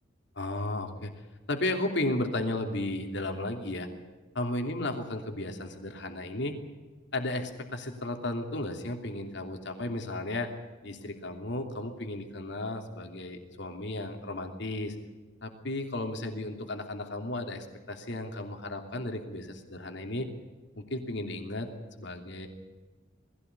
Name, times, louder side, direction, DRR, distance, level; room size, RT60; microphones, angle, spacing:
voice 1, 0.4-1.1 1.5-3.9 4.3-6.5 7.1-10.5 10.8-15.0 15.4-20.3 20.8-21.7 22.0-22.5, left 2 dB, 65° left, 5 dB, 3.0 m, -34 dB
20.5 x 16.5 x 9.7 m, 1.3 s
head